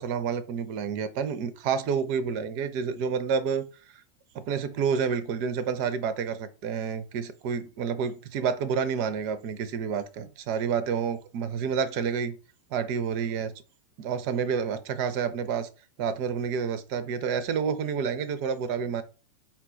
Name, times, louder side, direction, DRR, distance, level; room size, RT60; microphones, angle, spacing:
voice 1, 0.0-3.7 4.3-12.4 12.7-13.5 14.0-15.7 16.0-19.0, right 6 dB, 45° right, 0.5 m, -29 dB
4.3 x 2.3 x 3.9 m
figure-of-eight pair, 90°, 0 cm